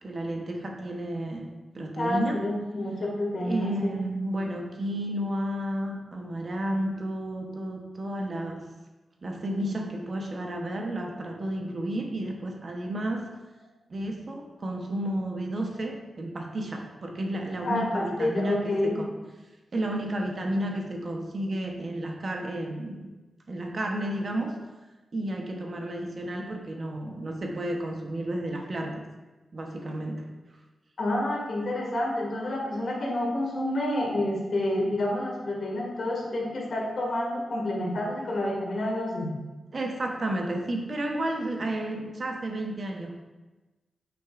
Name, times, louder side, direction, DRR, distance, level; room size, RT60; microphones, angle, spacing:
voice 1, 0.0-2.4 3.4-8.7 9.2-13.3 13.9-19.1 19.7-23.1 23.5-24.6 25.1-29.1 29.5-30.3 39.7-43.2, right 1 dB, 45° right, 2 dB, 1.0 m, -32 dB
voice 2, 2.0-4.0 17.6-19.0 31.0-39.3, left 1 dB, 60° left, -2 dB, 2.0 m, -29 dB
9.0 x 6.0 x 2.5 m, 1.2 s
wide cardioid pair, 90°, 0 cm